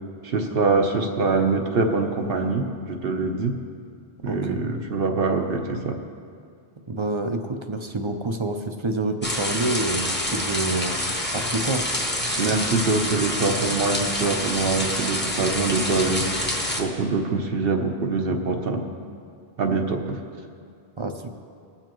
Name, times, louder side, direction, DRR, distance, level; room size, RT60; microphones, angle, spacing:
voice 1, 0.2-3.5 4.2-5.9 12.4-18.8 19.6-20.2, right 3 dB, 65° right, 3 dB, 1.0 m, -24 dB
voice 2, 4.3-4.6 6.9-11.0 11.3-11.9 21.0-21.3, right 2 dB, 35° right, 5 dB, 0.6 m, -27 dB
sound 1, 9.2-16.8, left 1 dB, 10° left, 1.0 m, -27 dB
20.5 x 7.3 x 3.0 m, 2.3 s
omnidirectional pair, 1.1 m